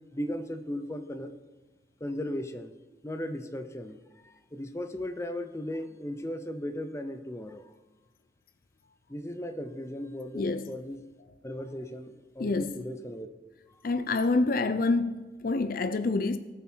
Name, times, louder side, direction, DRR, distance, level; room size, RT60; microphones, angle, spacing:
voice 1, 0.0-1.3 2.0-2.7 3.0-7.7 9.1-11.0 11.4-13.3 13.7-13.8, left 1 dB, 15° left, 0.7 m, -37 dB
voice 2, 10.3-10.7 12.4-12.8 13.8-16.4, left 3 dB, 50° left, 0.5 m, -27 dB
18.5 x 7.2 x 4.5 m
head